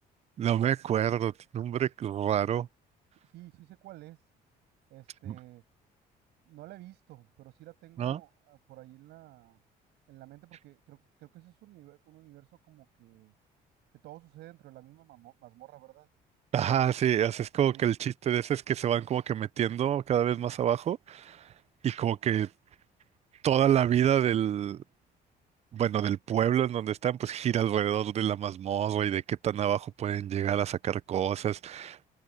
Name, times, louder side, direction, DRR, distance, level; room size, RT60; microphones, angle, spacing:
voice 1, 0.4-2.7 5.3-5.4 8.0-8.2 16.5-21.5 21.8-22.5 23.4-24.8 25.7-32.1, right 10 dB, 40° right, 0.5 m, -28 dB
voice 2, 3.2-4.2 4.9-5.7 6.4-9.6 10.1-13.3 14.0-16.1 17.7-17.9, right 16 dB, 80° right, 7.6 m, -52 dB
cardioid pair, 110°, 17 cm